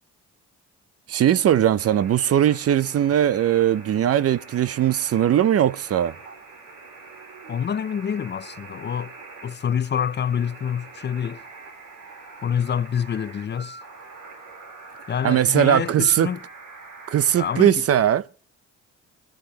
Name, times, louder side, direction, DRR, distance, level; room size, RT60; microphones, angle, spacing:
voice 1, 1.1-6.1 15.2-16.3 17.1-18.2, right 10 dB, 50° right, 0.6 m, -20 dB
sound 1, 1.8-17.7, right 4 dB, 85° right, 3.8 m, -44 dB
voice 2, 7.5-9.1 9.4-11.4 12.4-13.8 15.1-16.4 17.4-17.8, left 8 dB, 35° left, 0.6 m, -27 dB
25.0 x 12.0 x 2.9 m
cardioid pair, 90°, 30 cm